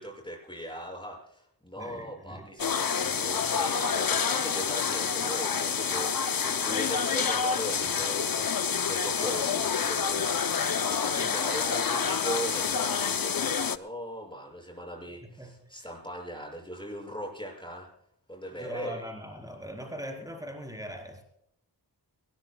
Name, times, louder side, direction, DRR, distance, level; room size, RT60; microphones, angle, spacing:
voice 1, 0.0-17.9 18.3-19.0, equal, 10° left, 1 dB, 6.5 m, -39 dB
voice 2, 1.8-2.5 15.2-15.9 18.6-21.2, equal, 10° right, 2 dB, 4.1 m, -41 dB
sound 1, 2.6-13.8, left 6 dB, 55° left, 0.7 m, -28 dB
22.5 x 18.5 x 2.3 m, 0.72 s
wide cardioid pair, 50°, 42 cm